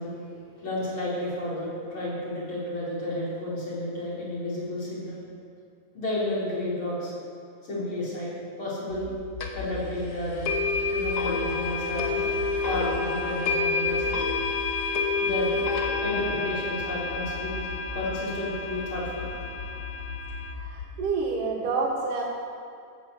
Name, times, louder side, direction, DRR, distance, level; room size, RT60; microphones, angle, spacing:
voice 1, 0.0-5.2 5.9-7.1 7.6-8.3 8.6-9.1 9.5-10.5 10.9-12.3 12.6-14.2 15.2-15.6 16.0-19.3, left 1 dB, 40° left, -8 dB, 4.9 m, -32 dB
sound 1, 8.9-20.9, left 5 dB, 85° left, 4.2 m, -39 dB
sound 2, 9.4-9.5 10.4-20.5, left 4 dB, 65° left, 1.0 m, -29 dB
voice 2, 20.5-22.2, right 4 dB, 85° right, -5 dB, 3.1 m, -28 dB
15.0 x 8.2 x 7.2 m, 2.3 s
omnidirectional pair, 3.6 m